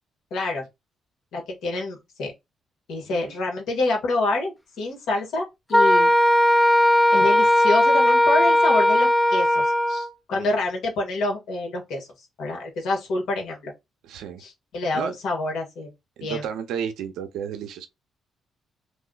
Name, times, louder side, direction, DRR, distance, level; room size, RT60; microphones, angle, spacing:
voice 1, 0.3-0.6 1.3-2.3 2.9-6.1 7.1-12.1 12.4-13.7 14.4-15.9 16.2-16.4, left 2 dB, 75° left, 1.4 m, -27 dB
Wind instrument woodwind instrument, 5.7-10.1, left 1 dB, 10° left, 0.4 m, -18 dB
voice 2, 14.0-14.4 14.9-15.2 16.2-17.9, right 8 dB, 85° right, 0.6 m, -32 dB
3.1 x 2.1 x 3.7 m
cardioid pair, 90°, 0 cm